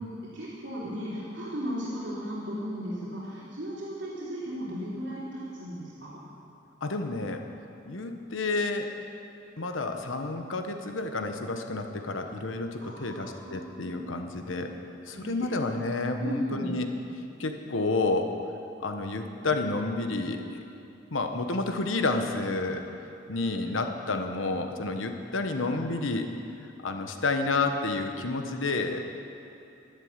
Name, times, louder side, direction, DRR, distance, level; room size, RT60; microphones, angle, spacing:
voice 1, 0.0-6.2 12.8-14.2 15.1-15.5 16.1-16.7, equal, 65° right, -8 dB, 3.3 m, -36 dB
voice 2, 6.8-7.4 7.9-8.9 9.6-14.7 15.1-16.9 17.4-18.3 18.8-20.4 21.1-22.8 23.3-26.3 26.6-29.0, left 3 dB, 90° left, 5 dB, 1.1 m, -30 dB
12.0 x 11.5 x 8.0 m, 2.7 s
head